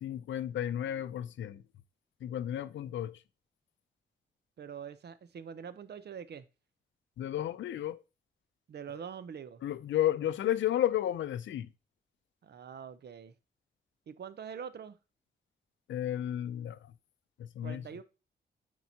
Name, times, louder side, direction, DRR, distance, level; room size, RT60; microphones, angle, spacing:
voice 1, 0.0-1.6 2.2-3.2 7.2-8.0 9.6-11.7 15.9-16.9 17.4-17.8, left 11 dB, 85° left, 0.5 m, -32 dB
voice 2, 4.6-6.4 8.7-9.6 12.4-13.3 14.1-15.0 17.6-18.0, right 7 dB, 60° right, 0.6 m, -44 dB
9.0 x 4.5 x 2.8 m
cardioid pair, 75°, 19 cm